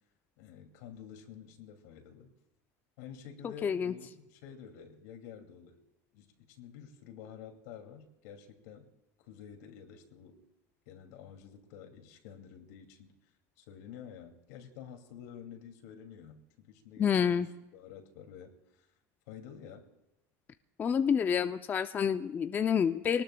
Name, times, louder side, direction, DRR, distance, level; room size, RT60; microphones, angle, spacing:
voice 1, 0.4-2.3 3.0-5.8 6.1-8.9 9.2-10.4 10.9-13.1 13.6-17.5 17.7-18.8 19.3-19.9, left 8 dB, 75° left, 4 dB, 2.5 m, -50 dB
voice 2, 3.4-3.9 17.0-17.5 20.8-23.2, left 7 dB, 20° left, 10 dB, 0.4 m, -28 dB
25.0 x 19.0 x 2.3 m, 0.95 s
supercardioid pair, 135°, 9 cm